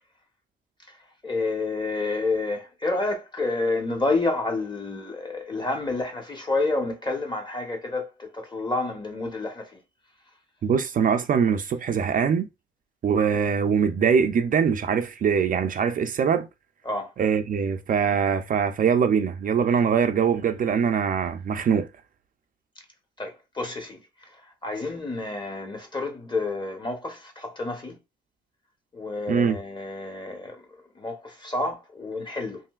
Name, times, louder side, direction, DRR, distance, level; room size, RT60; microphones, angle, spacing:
voice 1, 1.2-9.8 16.8-17.1 23.2-24.0 24.6-28.0 28.9-30.6 31.0-32.6, left 3 dB, 20° left, 0.9 m, -29 dB
voice 2, 10.6-12.5 13.0-16.5 17.2-21.9 29.3-29.6, right 7 dB, 45° right, 0.4 m, -23 dB
3.0 x 2.7 x 2.3 m
cardioid pair, 90°, 20 cm